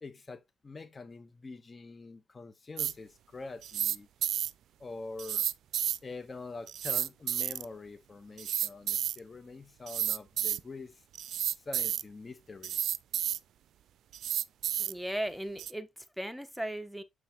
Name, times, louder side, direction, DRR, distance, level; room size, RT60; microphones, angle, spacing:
voice 1, 0.0-4.1 4.8-5.5 6.0-11.0 11.4-12.9, left 3 dB, 30° left, 1.0 m, -45 dB
sound 1, 2.8-2.9 3.6-4.0 4.2-4.5 5.2-6.0 6.7-7.6 8.4-9.2 9.9-10.6 11.1-12.0 12.6-13.4 14.1-14.9 15.6-15.7, right 11 dB, 75° right, 0.4 m, -31 dB
voice 2, 14.8-15.9 16.2-17.0, right 1 dB, ahead, 1.1 m, -36 dB
7.6 x 5.7 x 2.9 m
cardioid pair, 90°, 0 cm